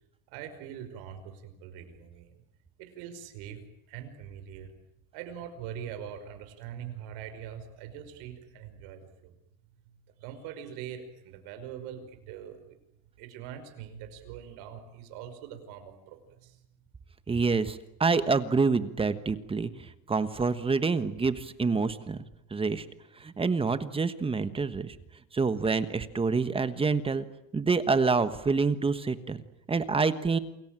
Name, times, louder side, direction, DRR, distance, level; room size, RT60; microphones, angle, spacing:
voice 1, 0.3-2.4 2.8-3.6 3.9-4.7 5.1-9.3 10.2-12.8 13.2-16.6, right 9 dB, 85° right, 8 dB, 5.5 m, -43 dB
voice 2, 17.3-19.7 20.1-22.2 22.5-22.8 23.2-24.9 25.3-27.2 27.5-29.4 29.7-30.4, right 4 dB, 15° right, 12 dB, 1.3 m, -27 dB
28.5 x 21.5 x 9.1 m, 0.83 s
cardioid pair, 155°, 37 cm